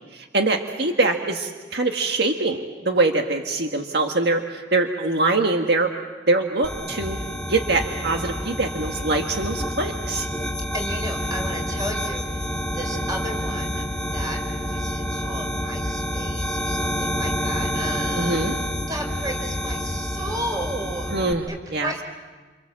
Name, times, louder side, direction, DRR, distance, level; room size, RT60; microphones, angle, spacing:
voice 1, 0.1-5.9 6.3-7.2 7.5-10.3 18.2-18.6 21.1-21.5 21.7-21.9, right 2 dB, 65° right, 3 dB, 1.8 m, -23 dB
sound 1, 6.6-21.3, equal, 5° left, 2.4 m, -28 dB
voice 2, 10.7-13.8 14.1-14.4 14.7-18.6 18.9-21.1 21.5-22.0, right 1 dB, 20° right, 4 dB, 4.5 m, -33 dB
29.0 x 28.0 x 7.5 m, 1.3 s
head